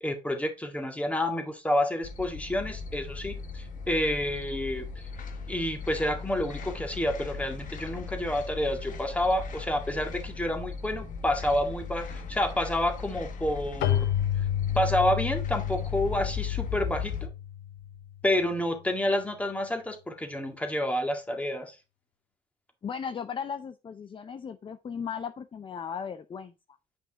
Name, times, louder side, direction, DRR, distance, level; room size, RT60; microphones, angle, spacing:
voice 1, 0.0-4.9 5.5-14.1 14.8-17.3 18.2-21.7, left 1 dB, 10° left, 1.8 m, -29 dB
sound 1, 2.0-17.3, left 5 dB, 50° left, 1.3 m, -38 dB
Keyboard (musical), 13.8-18.3, left 11 dB, 85° left, 0.8 m, -30 dB
voice 2, 22.8-26.5, left 7 dB, 30° left, 0.6 m, -36 dB
8.6 x 5.3 x 3.6 m
cardioid pair, 110°, 17 cm